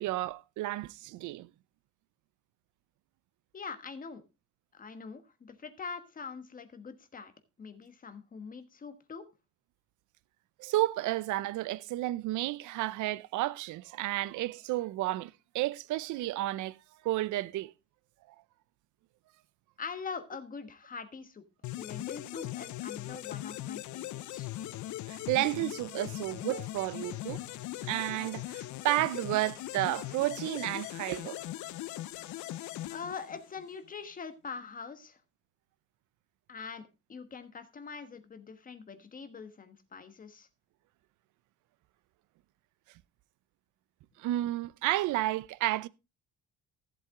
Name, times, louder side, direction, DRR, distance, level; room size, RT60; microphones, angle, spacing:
voice 1, 0.0-1.5 10.6-16.8 17.0-17.7 25.1-27.4 27.9-31.4 44.2-45.9, right 16 dB, 70° right, 0.6 m, -32 dB
voice 2, 3.5-4.2 4.7-7.3 7.6-9.3 19.8-21.4 21.7-24.5 32.9-35.2 36.5-40.5, left 5 dB, 25° left, 1.3 m, -43 dB
sound 1, 21.6-33.7, left 15 dB, 65° left, 0.6 m, -40 dB
14.5 x 7.7 x 3.7 m
cardioid pair, 155°, 31 cm